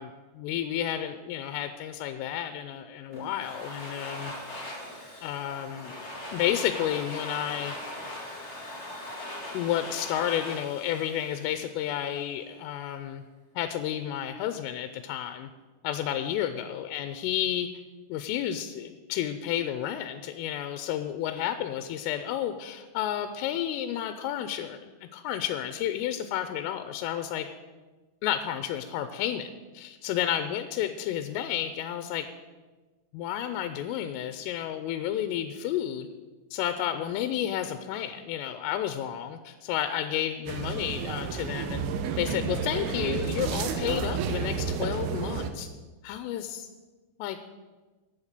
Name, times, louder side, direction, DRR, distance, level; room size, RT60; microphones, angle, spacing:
voice 1, 0.0-4.8 5.2-6.0 6.3-7.8 9.5-13.2 13.6-15.5 15.8-17.7 18.1-27.5 28.2-32.3 33.1-36.1 36.5-41.9 42.2-45.7 46.0-46.7 47.2-47.4, left 11 dB, 85° left, 9 dB, 3.2 m, -31 dB
Domestic sounds home sounds, 3.1-12.0, left 1 dB, 50° left, 0.7 m, -40 dB
sound 1, 40.5-45.5, right 6 dB, 90° right, 2.2 m, -31 dB
14.5 x 8.6 x 6.7 m, 1.2 s
omnidirectional pair, 5.8 m